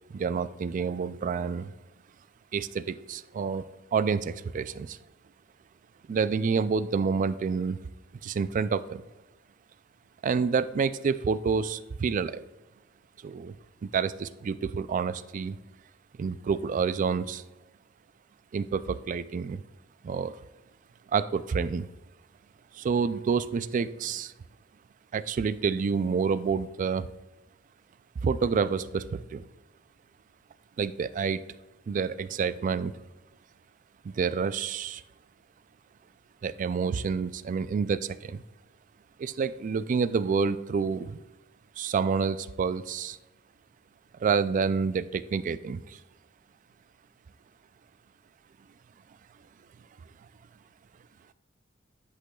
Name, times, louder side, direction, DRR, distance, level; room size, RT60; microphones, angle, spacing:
voice 1, 0.1-1.7 2.5-5.0 6.1-7.8 8.2-9.0 10.2-12.4 13.2-13.6 13.8-15.6 16.2-17.4 18.5-19.6 20.0-20.4 21.1-21.9 22.7-24.3 25.1-27.1 28.2-29.4 30.8-31.4 31.9-32.9 34.0-35.0 36.4-38.4 39.2-41.2 41.8-43.2 44.2-46.0, right 5 dB, 40° right, 14 dB, 0.3 m, -28 dB
9.9 x 8.2 x 2.3 m, 1.1 s
head